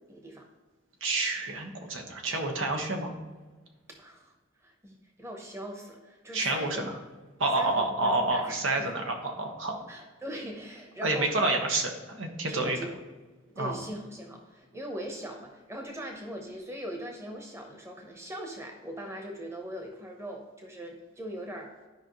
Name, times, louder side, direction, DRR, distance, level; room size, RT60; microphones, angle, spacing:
voice 1, 0.1-0.5 3.9-4.3 4.6-6.9 7.5-8.9 9.9-11.3 12.5-12.9 13.6-21.8, equal, 15° right, 2 dB, 1.0 m, -40 dB
voice 2, 1.0-3.1 6.3-7.0 7.4-9.8 11.0-12.8 13.6-13.7, right 2 dB, 85° right, 3 dB, 1.3 m, -29 dB
12.5 x 5.2 x 3.1 m, 1.3 s
head